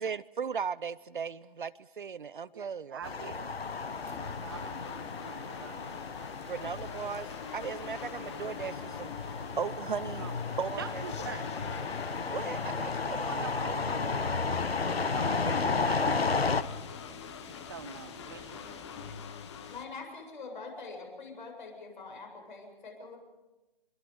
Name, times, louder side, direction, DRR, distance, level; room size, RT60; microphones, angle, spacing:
voice 1, 0.0-3.3 6.5-9.1 9.6-10.3 10.6-11.0 12.3-13.5 15.4-15.7, right 6 dB, 55° right, 19 dB, 0.6 m, -37 dB
voice 2, 2.5-3.5 4.3-5.8 10.2-11.5 13.3-14.6 15.1-16.6 17.5-18.9, right 7 dB, 25° right, 10 dB, 0.7 m, -45 dB
sound 1, 3.0-16.6, left 4 dB, 80° left, 1.1 m, -33 dB
sound 2, 3.6-19.9, left 7 dB, 30° left, 1.4 m, -44 dB
Mechanical fan, 10.5-19.1, left 2 dB, 5° left, 1.6 m, -56 dB
voice 3, 19.7-23.2, left 4 dB, 55° left, 2 dB, 7.8 m, -44 dB
25.5 x 23.0 x 5.4 m, 1.1 s
figure-of-eight pair, 145°, 30 cm